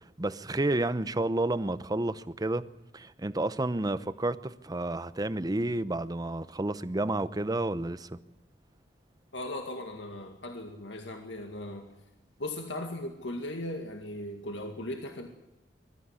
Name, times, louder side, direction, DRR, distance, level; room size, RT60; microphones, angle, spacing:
voice 1, 0.2-2.7 2.9-8.1, right 2 dB, 20° right, 0.8 m, -30 dB
voice 2, 9.3-11.9 12.4-15.3, left 1 dB, 80° left, 2.1 m, -38 dB
22.0 x 13.0 x 9.6 m
head